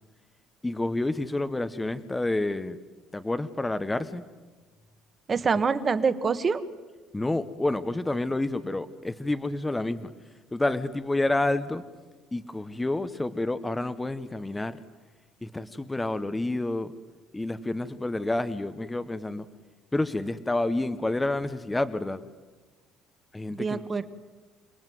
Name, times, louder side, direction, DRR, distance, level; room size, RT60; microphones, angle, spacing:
voice 1, 0.6-2.8 3.1-4.2 5.5-5.6 7.1-10.1 10.5-11.8 12.3-14.8 15.4-16.9 17.3-19.5 19.9-22.2 23.3-23.8, left 2 dB, 10° left, 12 dB, 0.9 m, -29 dB
voice 2, 5.3-6.6 23.5-24.1, right 5 dB, 25° right, 12 dB, 1.4 m, -25 dB
29.5 x 19.5 x 9.3 m, 1.4 s
cardioid pair, 155°, 0 cm